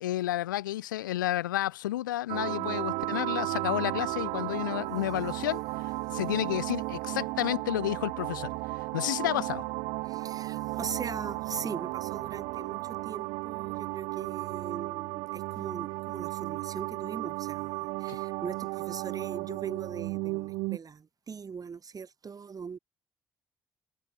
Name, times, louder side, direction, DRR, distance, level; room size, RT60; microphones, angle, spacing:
voice 1, 0.0-5.6 6.1-8.5 8.9-9.6 18.1-18.2, left 14 dB, 80° left, 0.6 m, -31 dB
sound 1, 2.3-20.8, right 26 dB, 65° right, 0.5 m, -34 dB
voice 2, 10.0-22.8, right 6 dB, 35° right, 1.7 m, -40 dB
figure-of-eight pair, 45°, 10 cm